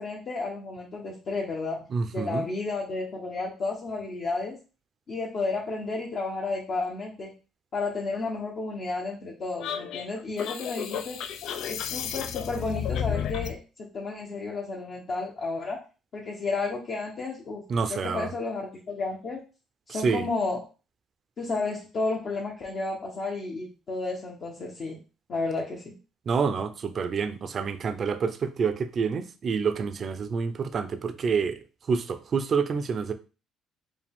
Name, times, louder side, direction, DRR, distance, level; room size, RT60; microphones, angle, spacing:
voice 1, 0.0-4.6 5.1-7.3 7.7-11.2 11.7-15.8 16.1-17.6 17.9-19.4 19.9-20.6 21.4-25.0 25.3-26.0, left 3 dB, 45° left, -2 dB, 1.0 m, -32 dB
voice 2, 1.9-2.5 17.7-18.3 19.9-20.3 26.3-31.6 31.9-33.1, right 5 dB, 45° right, 10 dB, 0.5 m, -28 dB
sound 1, 9.6-13.6, left 8 dB, 70° left, 0.4 m, -32 dB
4.8 x 2.4 x 3.5 m, 0.34 s
cardioid pair, 100°, 0 cm